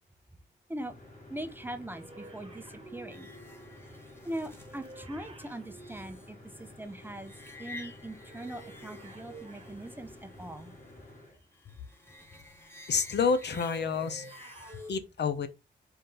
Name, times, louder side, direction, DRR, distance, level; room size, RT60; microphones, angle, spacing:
sound 1, 0.7-11.4, left 1 dB, 40° left, 2.0 m, -52 dB
voice 1, 1.3-3.3 4.2-7.3 7.6-10.7, right 1 dB, 10° right, 0.6 m, -41 dB
sound 2, 1.8-6.9 8.1-10.7 13.1-14.9, right 2 dB, 30° right, 1.3 m, -51 dB
sound 3, 3.1-14.9, left 2 dB, 10° left, 1.2 m, -52 dB
voice 2, 12.9-14.3 14.9-15.5, left 5 dB, 60° left, 0.6 m, -28 dB
4.4 x 2.6 x 3.8 m
cardioid pair, 75°, 20 cm